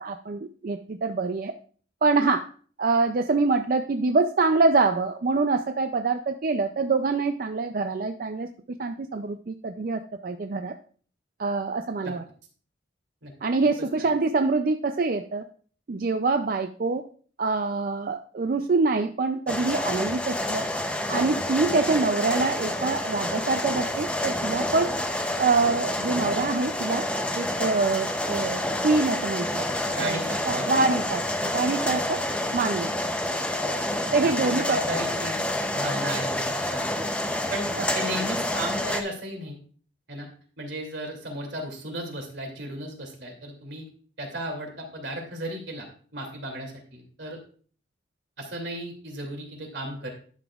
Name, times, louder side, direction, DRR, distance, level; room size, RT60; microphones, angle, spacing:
voice 1, 0.0-1.5 2.0-2.4 2.8-8.5 8.8-10.7 11.4-12.2 13.4-15.4 15.9-17.0 17.4-20.6 21.1-24.9 25.4-27.0 27.4-29.7 30.0-30.2 30.5-32.2 32.5-32.9 34.1-34.6, right 3 dB, 50° right, 7 dB, 0.4 m, -25 dB
sound 1, 19.5-39.0, left 1 dB, 5° left, 0.6 m, -28 dB
voice 2, 29.9-30.8 34.0-35.4 35.7-37.1 37.5-39.6 40.1-40.3 40.6-43.8 44.2-45.9 46.1-47.4 48.4-50.1, right 1 dB, 85° right, 2 dB, 2.6 m, -35 dB
11.0 x 7.0 x 2.4 m, 0.44 s
head